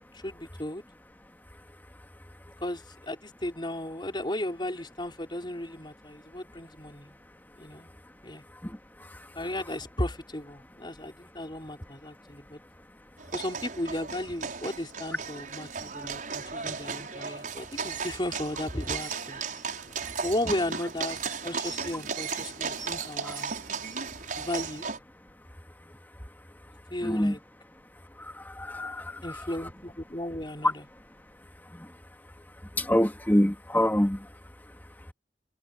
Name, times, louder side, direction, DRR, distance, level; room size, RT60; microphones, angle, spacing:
voice 1, 0.1-0.8 2.6-7.2 7.6-7.9 8.2-8.4 9.3-12.6 13.3-19.4 20.2-23.5 24.4-24.9 26.9-27.4 29.2-30.9, left 1 dB, 25° left, 4.8 m, -35 dB
sound 1, 13.2-25.0, right 5 dB, 50° right, 6.4 m, -35 dB
voice 2, 27.0-27.3 28.6-29.1 32.8-34.2, equal, 10° left, 1.9 m, -24 dB
head